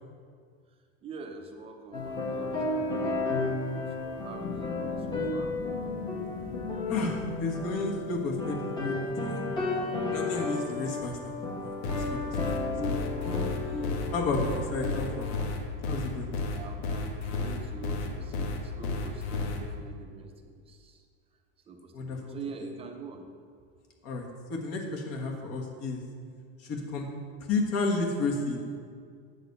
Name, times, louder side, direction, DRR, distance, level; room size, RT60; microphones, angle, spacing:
voice 1, 1.0-3.6 4.0-5.5 16.5-21.0 21.7-23.3, right 4 dB, 15° right, 4 dB, 0.6 m, -45 dB
sound 1, 1.9-15.3, left 2 dB, 15° left, 1.1 m, -33 dB
sound 2, 4.4-11.1, left 7 dB, 30° left, 0.4 m, -43 dB
voice 2, 6.9-9.4 10.1-11.3 11.6-11.8 12.1-12.4 12.8-13.0 14.1-15.3 15.9-16.3 21.9-22.4 24.0-26.0 26.6-27.1 27.5-28.7, left 3 dB, 45° left, 1 dB, 1.5 m, -32 dB
sound 3, 11.8-19.6, left 3 dB, 80° left, 1.2 m, -32 dB
8.3 x 4.0 x 6.6 m, 2.1 s
supercardioid pair, 150°, 34 cm